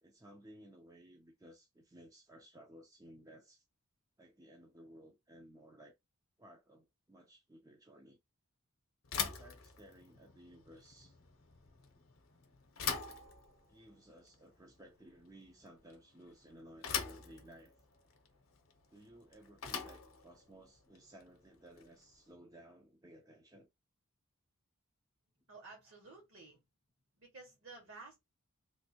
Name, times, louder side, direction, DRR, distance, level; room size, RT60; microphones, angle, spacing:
voice 1, 0.0-3.6 4.2-5.9 6.4-8.2 9.2-11.2 13.7-17.7 18.9-23.7, right 1 dB, 15° right, 0.5 m, -58 dB
Bicycle / Thump thud, 9.0-22.1, left 7 dB, 65° left, 0.8 m, -44 dB
voice 2, 25.4-26.6 27.1-28.2, right 3 dB, 60° right, 1.9 m, -53 dB
3.2 x 2.6 x 2.8 m
head